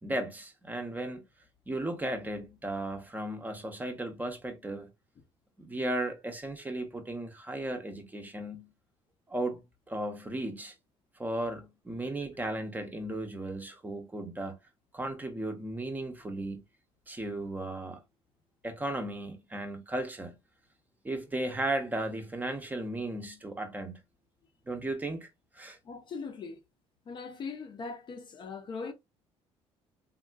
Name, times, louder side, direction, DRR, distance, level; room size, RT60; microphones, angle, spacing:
voice 1, 0.0-1.2 1.7-4.9 5.6-8.7 9.3-10.7 11.2-14.6 14.9-16.6 17.1-18.0 18.6-20.3 21.0-24.0 24.7-25.3 25.5-25.8, right 1 dB, 15° right, 0.6 m, -35 dB
voice 2, 25.8-26.6 27.1-28.9, left 4 dB, 45° left, 0.6 m, -40 dB
3.5 x 2.4 x 2.3 m
cardioid pair, 115°, 11 cm